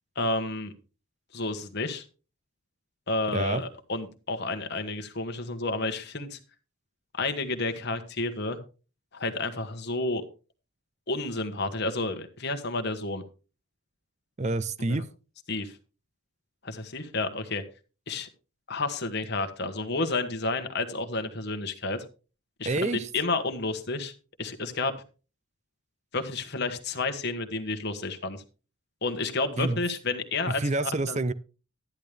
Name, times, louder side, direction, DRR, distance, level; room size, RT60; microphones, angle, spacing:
voice 1, 0.1-0.7 1.3-2.1 3.1-6.4 7.2-8.6 9.1-10.3 11.1-13.2 14.9-15.0 15.5-15.8 16.6-17.6 18.1-18.3 18.7-22.0 22.6-24.1 24.4-24.9 26.1-28.4 29.0-31.2, left 3 dB, 50° left, 1.3 m, -31 dB
voice 2, 14.4-15.1 22.6-23.1 29.6-29.8 30.6-31.3, right 2 dB, 30° right, 0.5 m, -27 dB
12.0 x 10.5 x 3.4 m
head